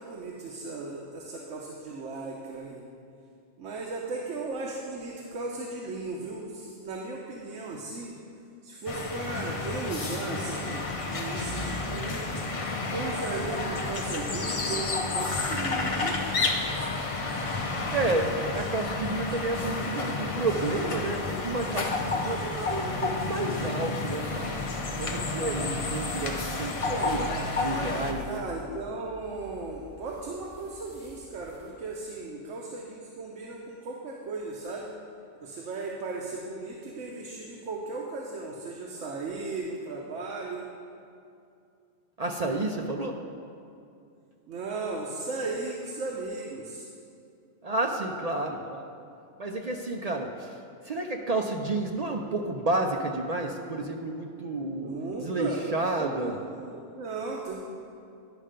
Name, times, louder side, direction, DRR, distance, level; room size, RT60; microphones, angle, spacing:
voice 1, 0.0-2.8 3.6-8.1 8.6-12.4 12.9-16.2 26.9-27.2 28.2-34.9 35.4-40.6 44.5-46.9 54.6-55.6 56.0-57.6, right 3 dB, 80° right, -1 dB, 1.1 m, -36 dB
sound 1, 8.9-28.1, left 3 dB, 35° left, 0.6 m, -31 dB
sound 2, 13.7-31.7, equal, 60° left, 1.5 m, -48 dB
voice 2, 17.9-24.6 25.0-26.7 27.0-27.3 27.6-28.4 42.2-43.2 47.6-48.9 49.4-50.5 50.8-54.9 55.2-56.4, right 2 dB, 60° right, 2 dB, 0.4 m, -30 dB
10.5 x 5.5 x 5.0 m, 2.5 s
omnidirectional pair, 1.2 m